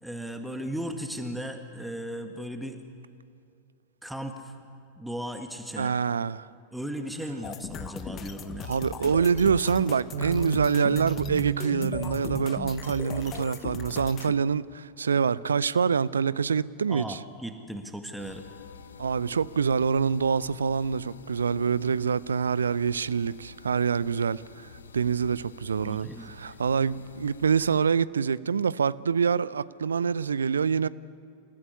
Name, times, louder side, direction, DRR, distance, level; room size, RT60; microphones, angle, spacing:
voice 1, 0.0-2.8 4.0-4.6 5.0-5.9 6.7-8.7 16.9-18.5 25.8-26.3, equal, 5° right, 1.7 m, -36 dB
voice 2, 5.8-6.5 8.7-17.2 19.0-24.7 24.9-30.9, right 6 dB, 70° right, 0.6 m, -26 dB
sound 1, 7.4-14.3, left 8 dB, 30° left, 1.2 m, -38 dB
Bass guitar, 10.1-14.5 15.2-16.4, right 5 dB, 55° right, 1.8 m, -37 dB
sound 2, 18.2-27.8, left 6 dB, 70° left, 1.1 m, -49 dB
28.0 x 15.5 x 9.9 m
figure-of-eight pair, 90°, 0 cm